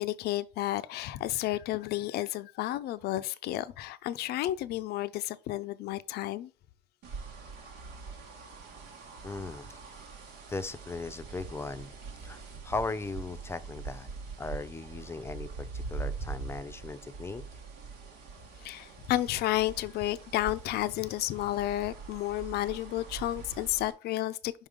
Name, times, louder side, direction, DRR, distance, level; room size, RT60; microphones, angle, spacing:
voice 1, 0.0-6.5 18.6-24.7, left 14 dB, 70° left, 0.4 m, -32 dB
sound 1, 7.0-23.9, right 4 dB, 85° right, 1.5 m, -43 dB
voice 2, 9.2-9.7 10.5-11.9 12.2-14.1 14.4-17.4, left 3 dB, 15° left, 0.5 m, -38 dB
5.3 x 3.7 x 5.0 m
cardioid pair, 110°, 17 cm